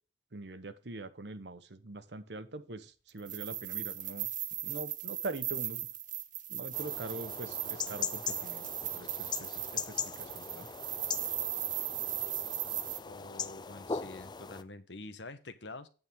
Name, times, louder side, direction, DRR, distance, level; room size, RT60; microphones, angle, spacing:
voice 1, 0.3-4.3 4.6-5.9 6.5-8.6 8.9-9.3 9.7-10.7, right 2 dB, 70° right, 11 dB, 1.1 m, -43 dB
sound 1, 3.2-13.0, right 12 dB, 45° right, 0.9 m, -38 dB
sound 2, 6.7-14.6, left 6 dB, 25° left, 0.5 m, -40 dB
voice 2, 13.1-15.9, left 2 dB, 85° left, 11 dB, 1.2 m, -46 dB
9.0 x 8.0 x 3.7 m, 0.35 s
head